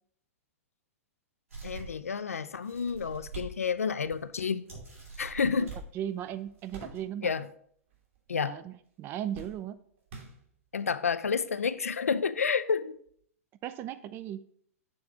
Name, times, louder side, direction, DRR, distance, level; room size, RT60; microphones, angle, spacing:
sound 1, 1.5-2.1 2.6-3.5 3.9-4.0 4.7-5.8 6.5-7.0, right 4 dB, 75° right, 2.9 m, -43 dB
voice 1, 1.6-4.6 5.2-5.7 7.2-7.5 8.3-8.6 10.7-13.0, left 6 dB, 80° left, 0.4 m, -30 dB
sound 2, 3.8-7.6 7.8-8.5 8.8-10.9 11.7-11.8 13.1-13.2, right 4 dB, 55° right, 1.8 m, -52 dB
voice 2, 5.9-7.3 8.4-9.8 13.6-14.4, right 10 dB, 30° right, 0.4 m, -37 dB
6.8 x 3.4 x 4.9 m
figure-of-eight pair, 105°, 8 cm